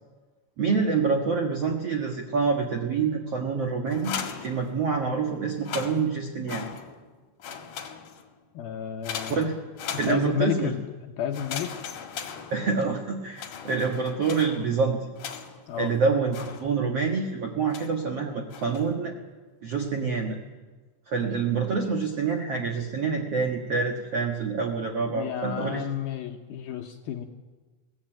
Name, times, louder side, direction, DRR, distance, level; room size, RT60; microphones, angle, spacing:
voice 1, 0.6-4.1 4.4-6.7 9.3-9.5 10.0-10.7 12.5-15.0 15.8-19.1 19.6-20.4 21.1-25.8, right 5 dB, 65° right, 3 dB, 1.5 m, -26 dB
sound 1, 3.9-5.1 5.5-7.1 7.4-8.4 9.0-10.6 11.3-13.0 13.3-15.7 16.3-17.0 17.7-18.1 18.5-19.0, left 7 dB, 55° left, 2.8 m, -39 dB
voice 2, 8.5-9.5 9.9-10.8 11.2-11.7 15.7-15.9 21.2-21.3 25.1-27.3, left 9 dB, 75° left, 4 dB, 2.3 m, -31 dB
22.0 x 17.0 x 9.0 m, 1.3 s
omnidirectional pair, 5.3 m